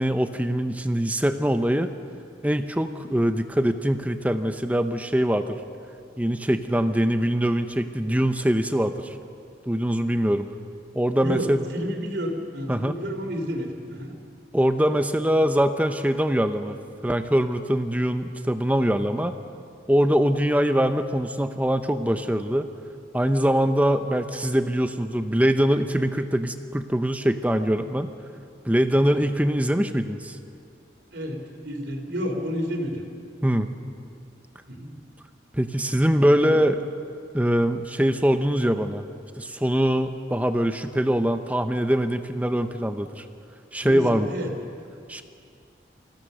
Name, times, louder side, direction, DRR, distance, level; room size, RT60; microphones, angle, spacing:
voice 1, 0.0-1.9 2.4-5.6 6.2-9.1 9.7-10.5 10.9-11.6 12.7-12.9 14.5-16.7 17.0-19.3 19.9-22.7 23.1-28.1 28.7-30.4 33.4-33.7 35.5-36.8 37.3-39.0 39.4-43.2 43.7-44.3 45.1-45.2, equal, 10° right, 8 dB, 0.7 m, -23 dB
voice 2, 11.2-14.1 31.1-33.0 34.7-34.9 36.1-36.6 43.8-44.5, equal, 70° right, 2 dB, 3.1 m, -30 dB
27.0 x 16.0 x 6.7 m, 2.4 s
head